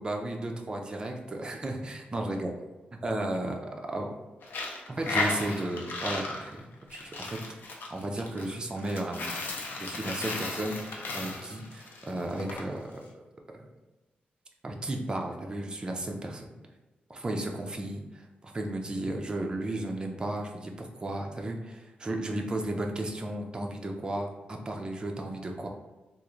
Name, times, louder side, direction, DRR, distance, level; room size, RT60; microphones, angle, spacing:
voice 1, 0.0-2.5 3.0-3.6 3.9-4.1 5.0-6.6 6.9-7.4 7.9-9.3 9.8-13.0 14.6-16.5 17.1-25.7, right 1 dB, 25° right, 2 dB, 0.4 m, -34 dB
Coin (dropping), 4.4-12.6, left 3 dB, 80° left, 0.5 m, -35 dB
3.6 x 2.4 x 3.0 m, 1.1 s
wide cardioid pair, 135°, 3 cm